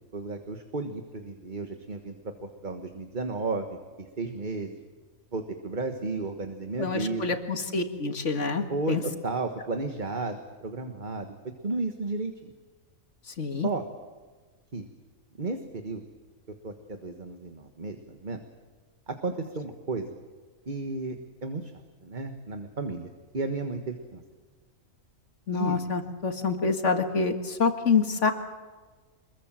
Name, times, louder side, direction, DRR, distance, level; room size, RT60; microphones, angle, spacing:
voice 1, 0.0-2.1 2.4-4.7 5.3-7.3 8.7-11.3 11.6-12.5 13.6-13.8 14.7-14.9 15.4-16.0 16.6-18.4 19.1-20.1 20.7-21.2 21.4-21.7 22.0-24.2 25.5-25.8, right 3 dB, 35° right, 6 dB, 1.6 m, -33 dB
voice 2, 6.8-9.0 13.4-13.7 25.5-28.3, left 4 dB, 60° left, 7 dB, 2.2 m, -27 dB
25.5 x 22.0 x 7.6 m, 1.4 s
omnidirectional pair, 1.4 m